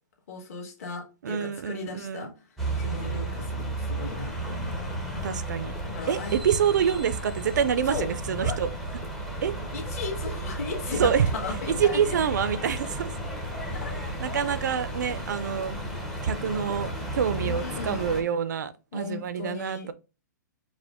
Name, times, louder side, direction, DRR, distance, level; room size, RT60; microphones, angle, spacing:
voice 1, 0.3-2.3 2.8-4.9 5.8-6.4 7.8-8.1 8.4-8.6 9.7-12.2 13.7-14.0 14.4-14.8 17.4-18.2 18.9-19.9, left 5 dB, 50° left, 1.4 m, -36 dB
voice 2, 1.2-2.3 5.2-5.7 6.1-8.7 9.4-9.5 11.0-11.3 11.8-13.1 14.2-15.8 16.2-19.9, right 8 dB, 70° right, 0.4 m, -26 dB
sound 1, 2.6-18.2, right 1 dB, ahead, 0.6 m, -33 dB
4.8 x 2.1 x 3.5 m
hypercardioid pair, 160°, 10 cm